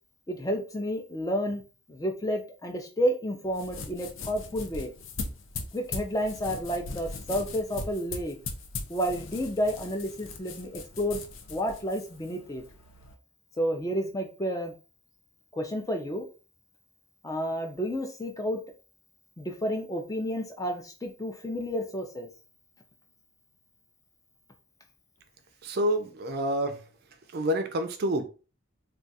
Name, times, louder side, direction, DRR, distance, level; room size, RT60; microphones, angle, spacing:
voice 1, 0.3-1.6 1.9-4.9 5.7-8.4 8.9-11.2 11.5-12.6 13.6-14.7 15.5-16.2 17.2-18.6 19.4-22.3, equal, 15° left, 0.4 m, -30 dB
sound 1, 3.5-13.1, left 3 dB, 65° left, 0.5 m, -40 dB
voice 2, 25.6-26.9 27.3-28.3, equal, 45° right, 0.4 m, -28 dB
2.4 x 2.3 x 4.0 m
head